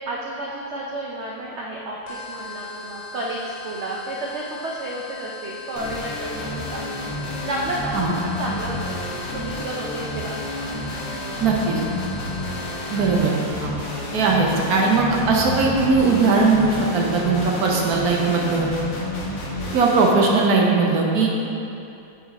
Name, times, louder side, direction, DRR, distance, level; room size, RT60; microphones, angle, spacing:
voice 1, 0.1-9.0 9.3-10.7, right 1 dB, 85° right, -3 dB, 0.6 m, -31 dB
sound 1, 2.1-13.5, left 4 dB, 60° left, 1.4 m, -39 dB
sound 2, 5.8-20.1, left 2 dB, 80° left, 1.7 m, -30 dB
voice 2, 11.4-11.8 12.9-13.3 13.6-13.7 14.1-18.7 19.7-21.3, right 4 dB, 60° right, -1 dB, 1.2 m, -19 dB
8.8 x 4.5 x 4.1 m, 2.8 s
omnidirectional pair, 2.0 m